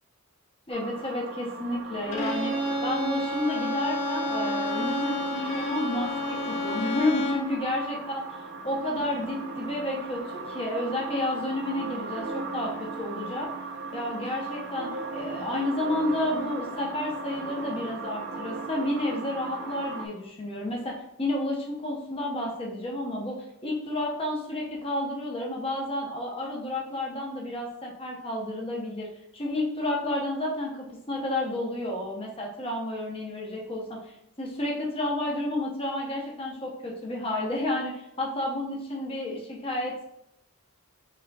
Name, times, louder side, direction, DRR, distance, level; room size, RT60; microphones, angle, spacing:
voice 1, 0.7-8.2 8.6-13.5 13.9-29.1 29.3-40.0, left 1 dB, 25° left, -1 dB, 0.7 m, -31 dB
sound 1, 0.7-20.1, right 3 dB, 50° right, 0.5 m, -37 dB
Bowed string instrument, 2.1-7.6, left 1 dB, 80° left, 1.0 m, -30 dB
5.0 x 3.6 x 2.3 m, 0.80 s
head